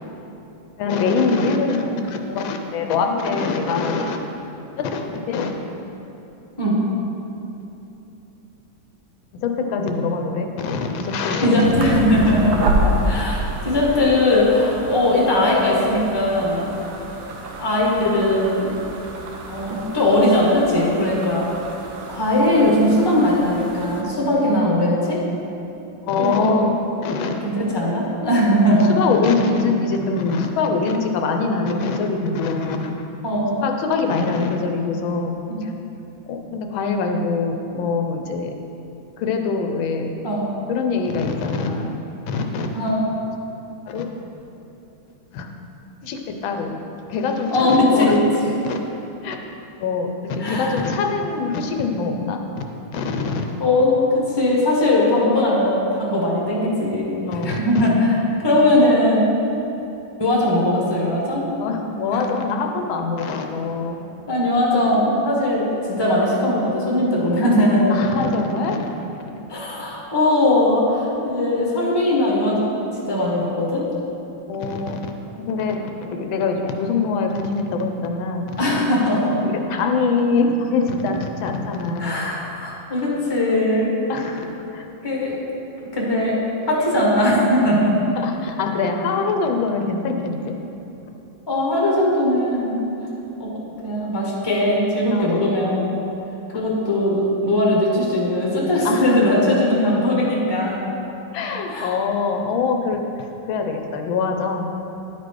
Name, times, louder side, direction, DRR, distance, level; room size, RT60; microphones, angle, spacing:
voice 1, 0.8-4.2 4.8-5.6 9.3-11.8 13.1-13.3 26.1-26.7 27.0-27.4 28.9-32.9 33.6-35.3 35.6-35.7 36.3-38.5 39.2-40.1 40.7-41.9 42.3-42.7 43.9-44.1 45.3-45.5 46.0-46.7 47.1-48.1 48.6-48.8 49.2-49.4 49.8-52.4 52.9-53.4 57.3-57.7 61.6-64.0 67.9-68.9 74.5-75.0 75.5-78.5 79.4-82.2 84.1-84.8 88.1-90.6 95.1-95.3 96.5-96.7 98.8-99.1 101.3-103.0 103.5-104.7, left 4 dB, 85° left, 4 dB, 1.4 m, -23 dB
voice 2, 11.4-13.4 13.6-16.7 17.6-18.7 19.5-21.5 22.1-25.2 26.2-26.6 27.4-29.0 33.2-33.6 35.5-35.6 40.2-40.5 42.7-43.0 47.5-48.5 50.4-50.8 53.6-58.2 58.4-59.3 60.2-61.4 62.1-62.2 64.3-68.0 69.5-73.8 78.6-79.4 82.0-84.0 85.0-85.4 85.9-86.4 86.7-87.9 91.5-92.8 93.4-93.5 93.8-95.9 96.5-100.8 101.7-101.9, left 1 dB, 15° left, -4 dB, 1.0 m, -19 dB
sound 1, 11.6-24.0, right 1 dB, 75° right, 1.5 m, -29 dB
10.5 x 4.2 x 4.7 m, 2.9 s
omnidirectional pair, 2.2 m